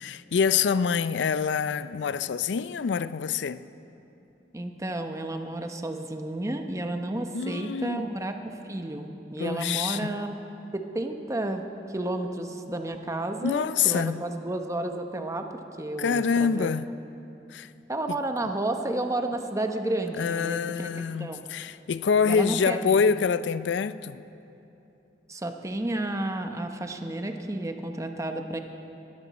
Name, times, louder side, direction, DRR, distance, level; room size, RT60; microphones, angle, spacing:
voice 1, 0.0-3.7 7.3-8.1 9.4-10.2 13.4-14.3 16.0-16.9 17.5-17.7 18.1-18.2 20.2-24.2, left 6 dB, 85° left, 0.4 m, -26 dB
voice 2, 4.5-10.3 10.7-15.5 15.8-16.7 17.9-21.4 22.2-23.0 25.3-28.6, right 1 dB, 20° right, 0.8 m, -31 dB
20.5 x 14.0 x 4.2 m
head